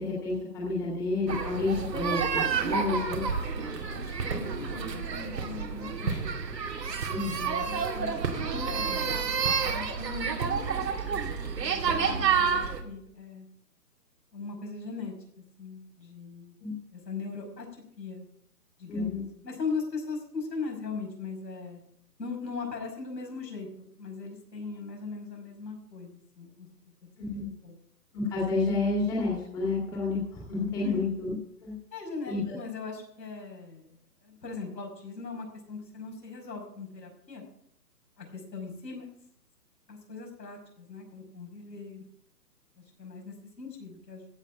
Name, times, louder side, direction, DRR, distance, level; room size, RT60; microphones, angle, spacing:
voice 1, 0.0-3.2 7.1-7.6 16.6-16.7 18.9-19.2 27.2-27.5 28.1-31.3 31.6-31.7 32.3-32.4, left 3 dB, 5° left, -4 dB, 2.2 m, -30 dB
sound 1, 1.3-12.8, right 6 dB, 75° right, 2.5 m, -29 dB
voice 2, 3.5-6.2 7.6-9.4 9.6-13.5 14.3-15.1 15.6-16.6 16.9-17.7 18.0-18.3 18.8-21.8 22.2-26.7 27.2-27.7 30.8-31.0 31.9-33.9 34.2-37.4 38.2-39.1 39.9-42.0 43.0-44.3, left 4 dB, 85° left, 1 dB, 5.9 m, -39 dB
15.5 x 6.1 x 7.7 m, 0.69 s
hypercardioid pair, 175°, 49 cm